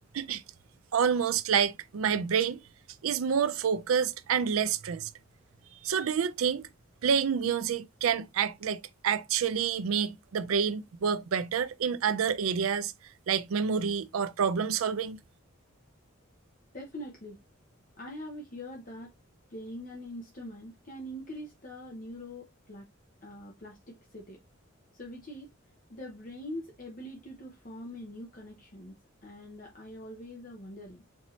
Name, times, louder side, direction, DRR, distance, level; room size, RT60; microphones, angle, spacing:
voice 1, 0.9-2.6 3.0-5.1 5.8-6.7 7.0-12.9 13.3-15.2, right 7 dB, 85° right, 0.4 m, -28 dB
voice 2, 16.7-17.4 18.0-19.1 19.5-22.9 23.2-24.4 24.9-25.5 25.9-31.0, left 1 dB, 40° left, 0.8 m, -43 dB
4.4 x 2.8 x 3.0 m
head